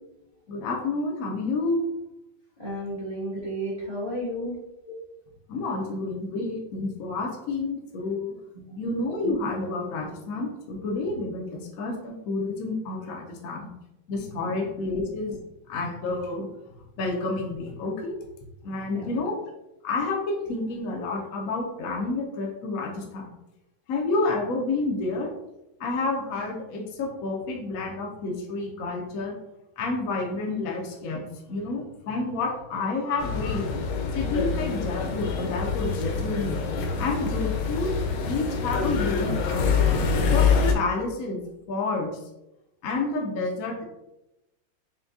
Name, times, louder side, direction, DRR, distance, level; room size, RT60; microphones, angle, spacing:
voice 1, 0.5-1.9 4.9-5.0 5.5-8.3 8.8-13.7 14.1-15.4 15.7-16.5 17.0-18.1 18.6-19.3 19.8-23.3 23.9-25.3 25.8-29.3 29.8-33.7 34.1-36.6 37.0-37.9 38.3-39.8 40.3-40.5 40.7-41.4 41.7-42.1 42.8-43.8, left 3 dB, 65° left, 0 dB, 0.8 m, -29 dB
voice 2, 2.6-4.6 8.5-8.8 14.4-14.6 14.8-15.0 18.9-19.2, equal, 25° left, -6 dB, 0.8 m, -33 dB
sound 1, 33.2-40.7, left 5 dB, 85° left, 1.5 m, -25 dB
5.7 x 2.2 x 2.7 m, 0.92 s
omnidirectional pair, 2.2 m